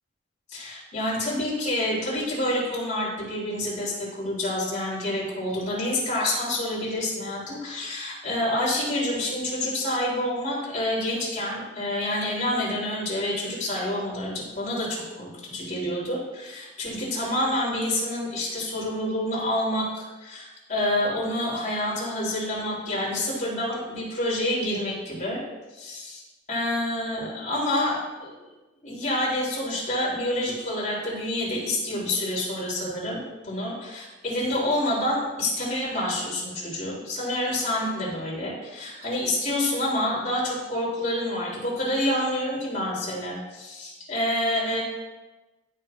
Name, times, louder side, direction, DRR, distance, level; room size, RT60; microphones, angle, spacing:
voice 1, 0.5-25.4 25.7-26.2 26.5-28.5 28.8-44.8, left 1 dB, 40° left, -6 dB, 3.2 m, -28 dB
16.5 x 5.8 x 2.5 m, 1.1 s
head